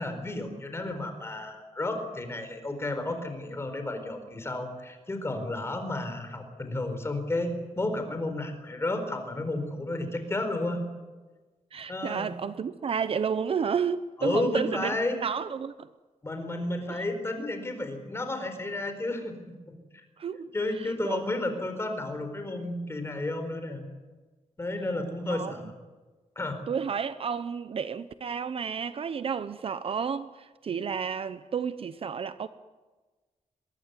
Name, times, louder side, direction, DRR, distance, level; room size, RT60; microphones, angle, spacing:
voice 1, 0.0-10.8 11.9-12.3 14.2-15.2 16.2-19.3 19.9-20.0 20.5-23.9 24.6-25.7 26.4-26.6, left 2 dB, 20° left, 4.3 m, -32 dB
voice 2, 11.7-15.0 15.2-15.9 16.9-17.0 20.2-21.4 25.3-25.6 26.7-32.5, right 6 dB, 45° right, 0.8 m, -31 dB
23.0 x 22.0 x 9.7 m
wide cardioid pair, 170°, 13 cm